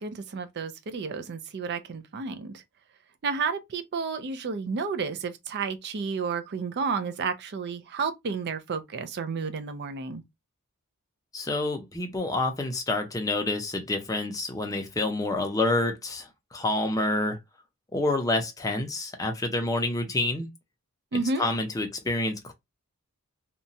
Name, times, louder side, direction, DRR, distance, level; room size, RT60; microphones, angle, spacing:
voice 1, 0.0-2.6 3.2-10.2 21.1-21.5, right 5 dB, 50° right, 0.4 m, -31 dB
voice 2, 11.3-17.4 17.9-20.5 21.4-22.5, left 2 dB, 15° left, 0.5 m, -28 dB
2.9 x 2.2 x 2.6 m
head